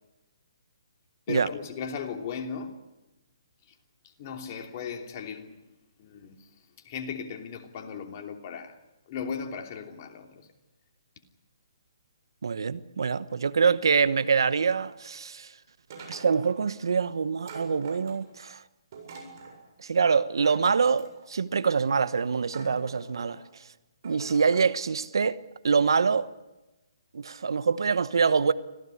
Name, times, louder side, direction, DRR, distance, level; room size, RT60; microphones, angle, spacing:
voice 1, 1.3-2.8 4.2-5.5 6.0-6.4 6.8-8.8 9.1-10.5, left 6 dB, 40° left, 3.0 m, -37 dB
voice 2, 12.4-15.5 16.1-18.6 19.8-23.4 24.0-25.4 25.6-26.3 27.1-28.5, right 5 dB, 70° right, 1.0 m, -25 dB
sound 1, 15.9-16.7 17.5-18.4 18.9-19.6 20.4-21.3 22.0-22.1 22.5-23.4 24.0-24.7, right 4 dB, 50° right, 7.5 m, -45 dB
25.5 x 16.5 x 9.9 m
figure-of-eight pair, 140°, 2 cm